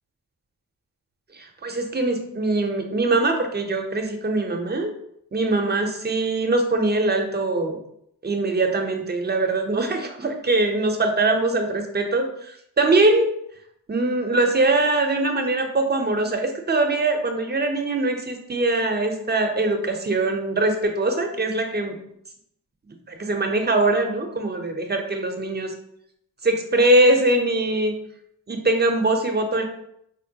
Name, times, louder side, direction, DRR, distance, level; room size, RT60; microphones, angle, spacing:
voice 1, 1.3-4.9 5.3-7.8 8.2-13.3 13.9-22.0 22.9-25.7 26.4-28.0 28.5-29.6, right 2 dB, 25° right, 4 dB, 0.6 m, -22 dB
3.7 x 2.1 x 2.7 m, 0.75 s
cardioid pair, 55°, 42 cm